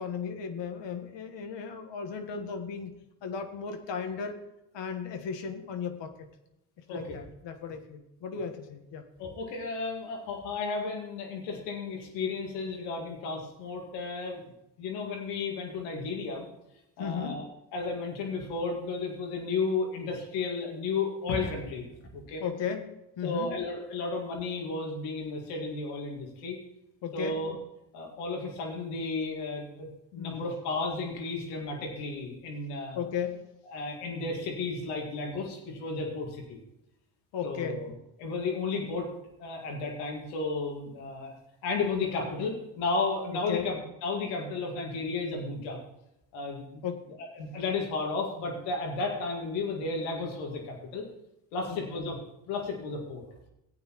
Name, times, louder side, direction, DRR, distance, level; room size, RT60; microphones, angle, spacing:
voice 1, 0.0-2.9 3.2-4.4 4.7-6.3 6.9-9.0 17.0-17.5 22.4-23.6 27.0-27.4 30.2-30.4 32.9-33.5 37.3-37.8 43.3-43.7 46.8-47.2 51.7-51.8, left 7 dB, 65° left, 6 dB, 1.4 m, -35 dB
voice 2, 6.9-7.2 9.2-14.4 14.8-16.4 17.0-17.4 17.7-21.9 22.1-22.4 23.2-26.6 27.1-27.6 27.9-33.0 33.7-36.6 37.4-37.9 38.2-39.1 39.4-41.4 41.6-45.8 46.3-46.8 47.4-51.1 51.5-52.2 52.5-53.2, left 3 dB, 90° left, 0 dB, 2.1 m, -33 dB
15.5 x 8.6 x 3.0 m, 0.88 s
hypercardioid pair, 55°, 46 cm